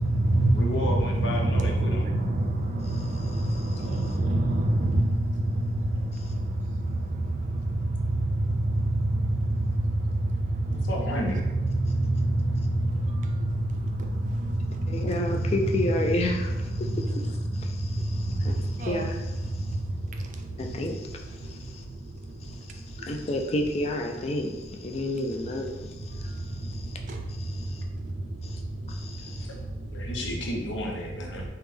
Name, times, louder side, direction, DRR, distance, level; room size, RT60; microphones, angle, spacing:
voice 1, 0.0-7.0 7.4-17.5 18.0-18.3 18.8-19.1 27.1-27.2, right 1 dB, 40° right, 0.4 m, -26 dB
voice 2, 0.5-2.1 10.7-11.4 29.4-29.6 29.9-31.4, left 1 dB, 90° left, 0.6 m, -32 dB
voice 3, 14.9-19.7 20.6-21.8 22.4-27.0 27.4-27.8 28.4-28.6 28.9-29.5, left 1 dB, 35° left, 0.3 m, -32 dB
3.3 x 2.1 x 3.3 m
head